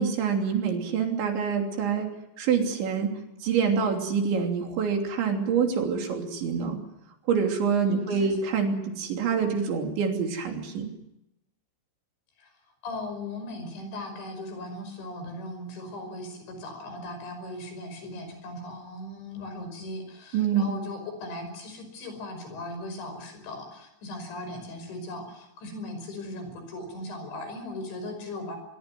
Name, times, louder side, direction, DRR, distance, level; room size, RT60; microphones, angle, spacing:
voice 1, 0.0-2.1 2.4-3.1 3.4-6.8 7.3-10.9 20.3-20.7, right 6 dB, 60° right, 3 dB, 5.2 m, -26 dB
voice 2, 7.9-8.3 12.4-12.5 12.8-28.6, left 1 dB, 60° left, 7 dB, 7.6 m, -38 dB
24.5 x 22.5 x 7.7 m, 0.85 s
omnidirectional pair, 6.0 m